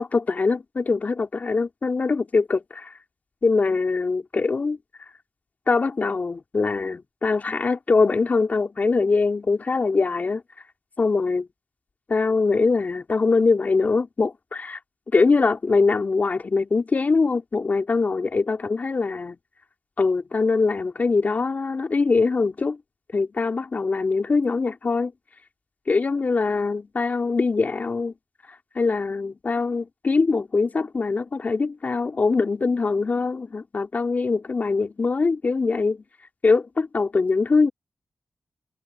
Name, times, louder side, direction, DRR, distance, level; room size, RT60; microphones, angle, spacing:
voice 1, 0.0-2.9 3.4-4.8 5.7-10.4 11.0-11.5 12.1-14.8 15.1-19.4 20.0-22.8 23.1-25.1 25.9-28.1 28.7-36.0 36.4-37.7, left 4 dB, 55° left, 4.6 m, -22 dB
cardioid pair, 45°, 3 cm